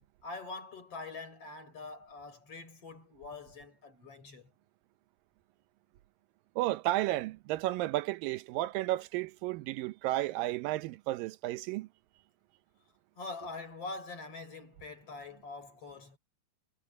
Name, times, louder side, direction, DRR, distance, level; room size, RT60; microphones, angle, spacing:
voice 1, 0.0-4.5 13.2-16.2, left 3 dB, 45° left, 5.1 m, -44 dB
voice 2, 6.6-11.9, right 16 dB, 90° right, 2.5 m, -32 dB
omnidirectional pair, 3.9 m